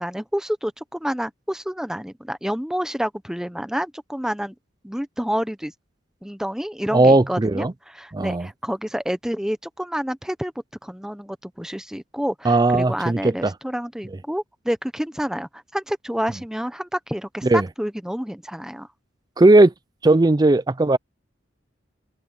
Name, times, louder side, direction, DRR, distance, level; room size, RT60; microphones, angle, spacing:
voice 1, 0.0-4.5 4.8-5.7 6.2-10.5 10.8-18.9, equal, 5° right, 0.8 m, -29 dB
voice 2, 6.9-7.7 8.1-8.5 12.4-13.5 17.4-17.7 19.4-19.7 20.0-21.0, right 2 dB, 20° right, 0.4 m, -17 dB
head